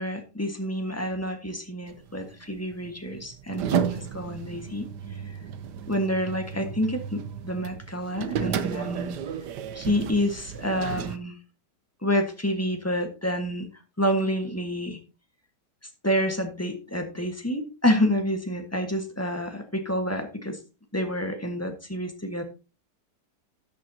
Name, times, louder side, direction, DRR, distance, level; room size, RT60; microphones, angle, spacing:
voice 1, 0.0-4.9 5.9-9.2 9.7-11.4 12.0-13.7 14.0-15.0 16.0-20.6 20.9-22.4, equal, 10° left, 5 dB, 1.3 m, -28 dB
sound 1, 1.9-11.2, right 8 dB, 80° right, 1.4 m, -33 dB
13.0 x 8.6 x 2.8 m, 0.31 s
omnidirectional pair, 1.8 m